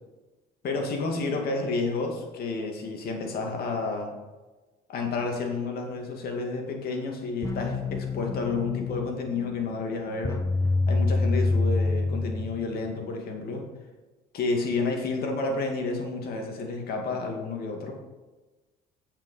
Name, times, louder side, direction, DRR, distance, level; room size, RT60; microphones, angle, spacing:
voice 1, 0.6-4.1 4.9-10.4 10.9-13.6 14.3-17.9, left 3 dB, 65° left, 2 dB, 2.3 m, -30 dB
sound 1, 7.4-13.0, left 3 dB, 20° left, 0.7 m, -27 dB
8.8 x 7.2 x 5.6 m, 1.2 s
cardioid pair, 110°, 17 cm